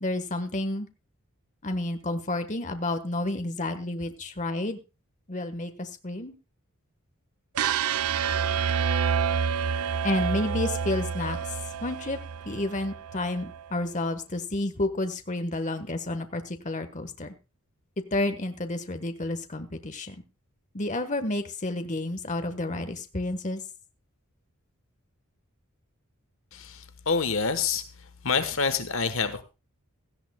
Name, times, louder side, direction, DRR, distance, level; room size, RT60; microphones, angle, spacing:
voice 1, 0.0-0.9 1.6-4.8 5.3-6.4 10.0-11.6 11.8-12.2 12.4-17.3 18.1-20.2 20.7-23.6, left 2 dB, 35° left, 8 dB, 1.3 m, -30 dB
sound 1, 7.6-13.6, right 7 dB, 85° right, 0.5 m, -28 dB
voice 2, 26.5-27.9 28.2-29.4, left 5 dB, 60° left, 10 dB, 1.2 m, -27 dB
17.0 x 14.5 x 2.3 m, 0.28 s
head